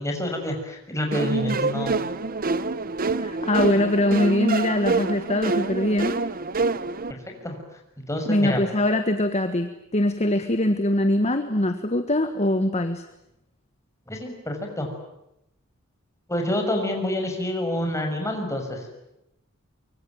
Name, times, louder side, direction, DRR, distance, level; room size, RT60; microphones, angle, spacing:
voice 1, 0.0-2.0 7.2-7.6 8.1-8.6 14.1-14.9 16.3-18.8, left 1 dB, 15° left, 3 dB, 6.4 m, -27 dB
sound 1, 1.1-7.1, right 3 dB, 45° right, 0.9 m, -26 dB
voice 2, 3.2-6.2 8.3-13.0, left 1 dB, 30° left, 8 dB, 1.5 m, -22 dB
25.0 x 24.0 x 9.3 m, 0.86 s
head